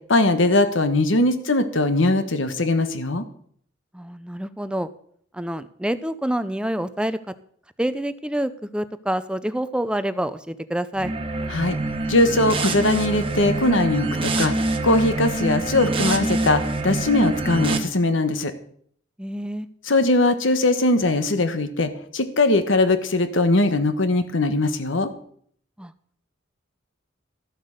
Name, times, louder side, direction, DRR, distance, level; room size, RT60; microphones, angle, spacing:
voice 1, 0.1-3.2 11.5-11.8 12.1-18.5 19.8-25.1, left 2 dB, 70° left, 10 dB, 1.3 m, -20 dB
voice 2, 3.9-4.9 5.3-7.3 7.8-11.1 19.2-19.7 25.8-25.9, right 1 dB, 5° right, 13 dB, 0.5 m, -27 dB
sound 1, 11.0-17.8, right 2 dB, 30° right, 1.5 m, -25 dB
13.5 x 7.9 x 6.6 m, 0.62 s
head